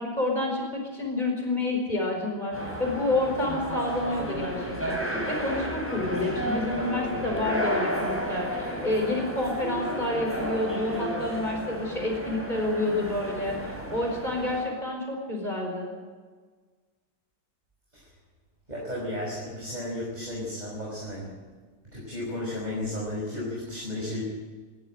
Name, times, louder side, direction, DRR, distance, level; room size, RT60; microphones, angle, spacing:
voice 1, 0.0-2.5 2.8-15.9, left 2 dB, 25° left, 0 dB, 4.9 m, -29 dB
sound 1, 2.5-14.7, equal, 5° right, 5.7 m, -32 dB
voice 2, 18.7-21.3 21.9-24.2, left 1 dB, 25° right, -4 dB, 5.7 m, -33 dB
26.0 x 12.5 x 9.0 m, 1.4 s
omnidirectional pair, 1.8 m